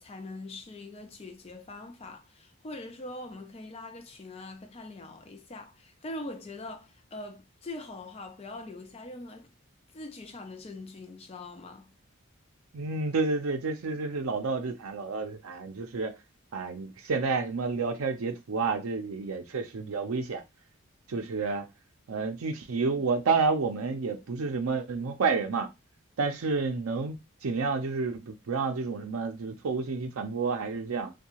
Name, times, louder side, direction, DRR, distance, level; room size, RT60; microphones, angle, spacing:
voice 1, 0.0-9.5 9.9-11.9, left 2 dB, 25° left, 0.4 m, -42 dB
voice 2, 12.7-16.2 16.5-20.4 21.1-21.7 22.1-25.7 26.2-27.2 27.4-31.1, right 4 dB, 80° right, 0.5 m, -30 dB
2.7 x 2.2 x 2.8 m
head